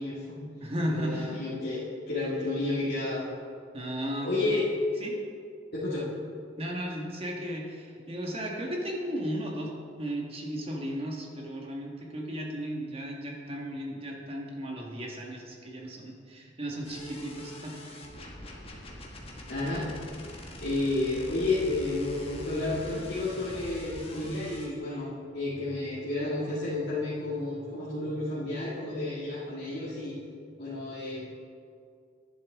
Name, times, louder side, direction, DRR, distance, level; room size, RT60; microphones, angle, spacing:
voice 1, 0.0-0.5 0.9-3.3 4.2-4.7 5.7-6.1 19.5-19.9 20.6-30.2 30.6-31.4, left 2 dB, 60° left, -10 dB, 2.0 m, -31 dB
voice 2, 0.6-1.4 3.7-4.6 5.0-5.2 6.6-9.7 10.0-17.9, equal, 30° right, -1 dB, 1.5 m, -35 dB
sound 1, 16.8-24.7, left 1 dB, 30° left, 1.5 m, -43 dB
11.0 x 10.5 x 3.6 m, 2.3 s
head